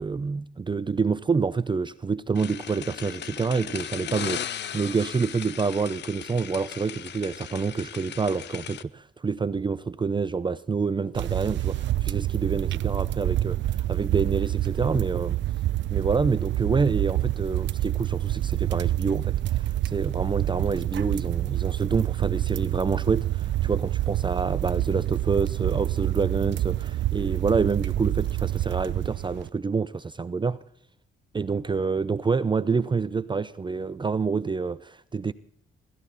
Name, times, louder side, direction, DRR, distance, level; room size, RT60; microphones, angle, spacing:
voice 1, 0.0-15.4 15.9-30.6 31.3-35.3, right 5 dB, 25° right, 0.6 m, -27 dB
sound 1, 2.3-8.8, left 9 dB, 60° left, 1.0 m, -37 dB
sound 2, 11.1-29.5, right 14 dB, 65° right, 0.6 m, -27 dB
24.5 x 14.0 x 4.1 m
cardioid pair, 90°, 20 cm